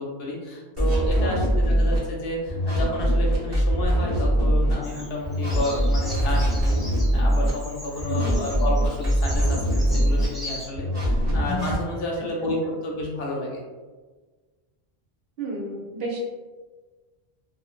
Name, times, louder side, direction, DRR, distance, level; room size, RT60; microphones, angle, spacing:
voice 1, 0.0-13.6, left 1 dB, 70° left, -2 dB, 0.8 m, -31 dB
sound 1, 0.8-2.0 2.5-4.7 5.2-7.5 8.0-10.3 10.8-11.8, equal, 35° right, 0.7 m, -22 dB
voice 2, 1.1-1.6 8.1-8.5 12.2-12.3 12.6-12.7 15.4-16.2, right 2 dB, 70° right, -2 dB, 0.8 m, -32 dB
Bird vocalization bird call bird song, 4.8-10.7, equal, ahead, 0.4 m, -40 dB
2.4 x 2.1 x 2.4 m, 1.3 s
omnidirectional pair, 1.1 m